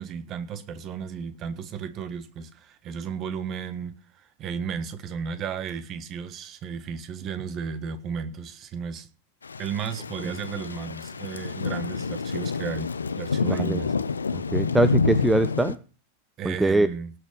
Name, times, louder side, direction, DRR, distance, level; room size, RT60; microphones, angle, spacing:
voice 1, 0.0-9.1 9.6-13.9 16.4-17.1, right 6 dB, 35° right, 1.5 m, -34 dB
Thunder / Rain, 9.4-15.7, left 5 dB, 75° left, 0.7 m, -28 dB
voice 2, 13.4-13.8 14.3-15.8 16.4-16.9, right 2 dB, 10° right, 0.6 m, -23 dB
18.5 x 6.5 x 5.4 m
figure-of-eight pair, 90°, 0 cm